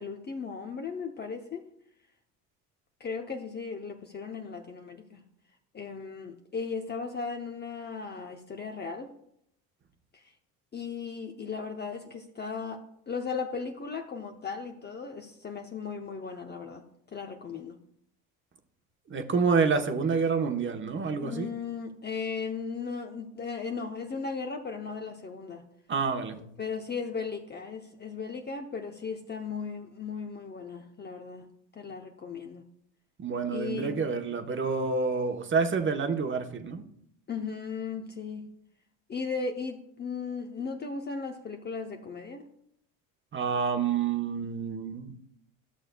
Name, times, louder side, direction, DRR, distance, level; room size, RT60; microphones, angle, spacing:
voice 1, 0.0-1.7 3.0-5.2 5.7-9.1 10.1-10.3 10.7-16.8 17.1-17.8 21.2-25.6 26.6-31.5 31.7-32.6 33.5-34.0 37.3-38.5 39.1-42.4, left 5 dB, 25° left, 4 dB, 0.8 m, -36 dB
voice 2, 19.1-21.5 25.9-26.4 33.2-36.8 43.3-45.2, right 5 dB, 30° right, 6 dB, 1.1 m, -28 dB
14.0 x 6.4 x 2.3 m, 0.72 s
hypercardioid pair, 75°, 41 cm